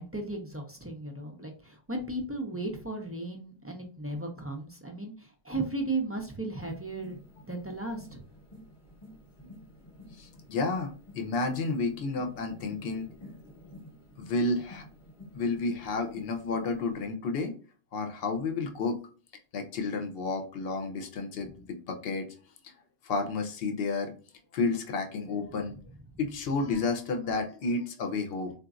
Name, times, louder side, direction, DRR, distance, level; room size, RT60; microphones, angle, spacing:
voice 1, 0.0-7.2 7.4-8.2, right 2 dB, 20° right, 1 dB, 0.4 m, -35 dB
sound 1, 6.6-17.1, left 1 dB, 30° left, 1.0 m, -51 dB
voice 2, 10.2-13.1 14.2-14.8 15.3-17.6 17.9-19.0 19.5-22.3 22.6-22.7 23.0-24.1 24.5-25.8 26.2-28.5, left 3 dB, 65° left, 5 dB, 0.9 m, -31 dB
3.9 x 2.5 x 2.4 m, 0.40 s
omnidirectional pair, 1.1 m